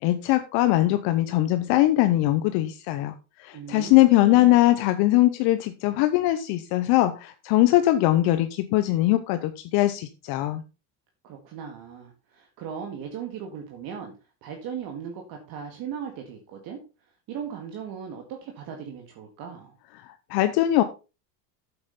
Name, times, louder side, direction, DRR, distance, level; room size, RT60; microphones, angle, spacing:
voice 1, 0.0-3.1 3.4-10.6 20.3-20.8, left 15 dB, 50° left, 9 dB, 0.9 m, -21 dB
voice 2, 3.5-4.6 11.2-14.1 14.4-19.8, right 7 dB, 45° right, 3 dB, 1.9 m, -38 dB
9.2 x 7.9 x 4.1 m, 0.31 s
supercardioid pair, 145°, 48 cm